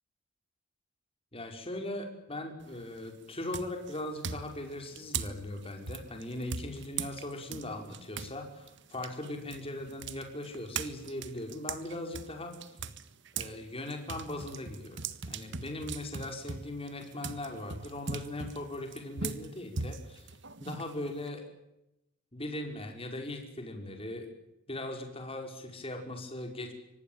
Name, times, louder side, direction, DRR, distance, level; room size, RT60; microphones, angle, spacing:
voice 1, 1.3-12.5 13.3-15.0 15.3-20.3 20.6-21.4 22.3-24.3 24.7-26.7, left 1 dB, 25° left, 4 dB, 5.5 m, -39 dB
sound 1, 2.6-3.0 3.5-8.3 8.7-13.6 13.9-21.3, right 5 dB, 60° right, 1.6 m, -39 dB
25.5 x 19.0 x 9.1 m, 0.88 s
head